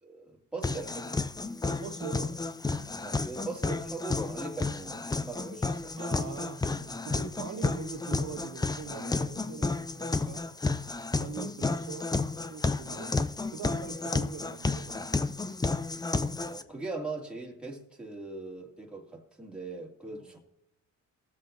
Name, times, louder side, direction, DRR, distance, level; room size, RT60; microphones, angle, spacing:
voice 1, 0.0-1.3 2.1-2.2 3.0-6.1 16.4-20.4, right 3 dB, 5° right, 2.2 m, -40 dB
sound 1, 0.6-16.6, left 3 dB, 15° left, 0.5 m, -32 dB
voice 2, 1.6-2.3 2.7-3.0 6.0-10.5 11.1-12.1 12.5-13.1 13.5-15.1 20.1-20.2, right 7 dB, 85° right, 1.7 m, -42 dB
20.0 x 7.5 x 2.6 m
cardioid pair, 90°, 30 cm